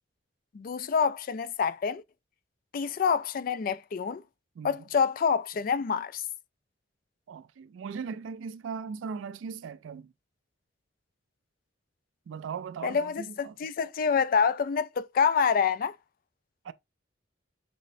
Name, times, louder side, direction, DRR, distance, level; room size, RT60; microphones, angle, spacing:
voice 1, 0.5-2.0 2.7-4.2 4.6-6.2 12.8-16.0, left 6 dB, 50° left, 0.3 m, -27 dB
voice 2, 7.3-10.1 12.3-13.6 16.6-16.7, right 6 dB, 90° right, 0.3 m, -38 dB
6.2 x 2.1 x 2.6 m
head